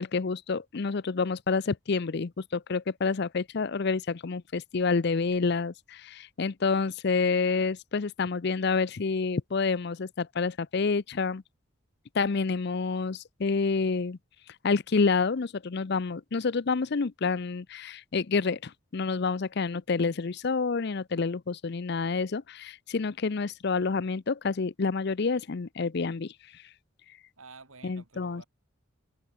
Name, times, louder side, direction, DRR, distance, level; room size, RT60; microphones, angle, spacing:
voice 1, 0.0-11.4 12.1-14.2 14.6-26.3 27.8-28.4, left 4 dB, 50° left, 0.5 m, -28 dB
voice 2, 27.4-28.5, right 4 dB, 85° right, 4.5 m, -50 dB
head